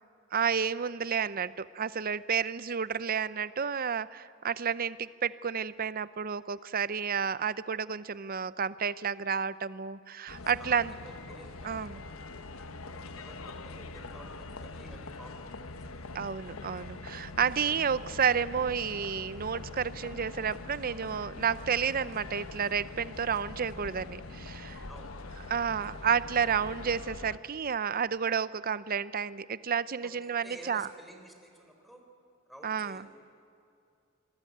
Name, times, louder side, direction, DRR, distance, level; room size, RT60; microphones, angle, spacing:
voice 1, 0.3-10.9 11.6-12.0 16.1-24.9 25.5-30.9 32.6-33.1, right 7 dB, 45° right, 17 dB, 0.6 m, -31 dB
sound 1, 10.3-27.4, left 3 dB, 85° left, 1.2 m, -43 dB
voice 2, 10.4-12.4 12.8-16.3 24.9-25.2 30.0-32.0 32.5-33.1, right 1 dB, ahead, 3 dB, 3.7 m, -52 dB
26.5 x 21.0 x 9.3 m, 2.5 s
head